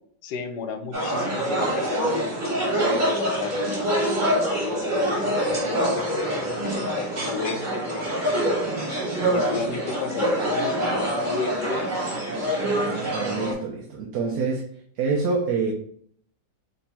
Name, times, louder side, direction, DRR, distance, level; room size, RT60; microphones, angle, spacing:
voice 1, 0.2-8.7 9.3-11.9, left 5 dB, 75° left, 7 dB, 1.2 m, -33 dB
sound 1, 0.9-13.5, right 1 dB, 30° right, 1.2 m, -25 dB
voice 2, 12.9-14.7 15.0-15.7, right 4 dB, 75° right, 1 dB, 1.2 m, -26 dB
3.4 x 3.0 x 4.2 m, 0.62 s
omnidirectional pair, 1.8 m